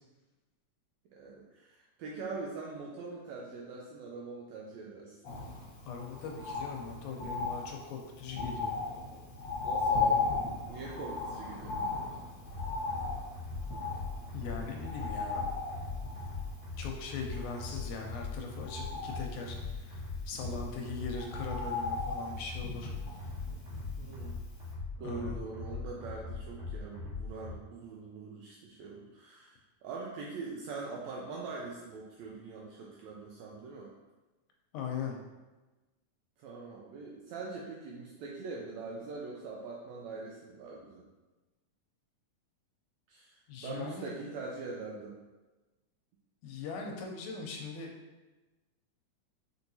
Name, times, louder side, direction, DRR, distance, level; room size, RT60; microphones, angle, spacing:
voice 1, 1.1-5.2 9.6-12.2 24.0-24.4 25.0-33.9 36.4-41.0 43.1-45.2, right 3 dB, 80° right, -3 dB, 1.6 m, -43 dB
Bird, 5.2-24.4 24.7-24.8, left 4 dB, 55° left, 1.3 m, -37 dB
voice 2, 5.8-8.8 14.3-15.5 16.8-22.9 25.0-25.4 34.7-35.2 43.5-44.1 46.4-47.9, left 5 dB, 80° left, 2 dB, 1.9 m, -40 dB
sound 1, 12.5-27.5, left 4 dB, 55° right, 1.6 m, -40 dB
4.5 x 4.3 x 2.7 m, 1.2 s
omnidirectional pair, 3.6 m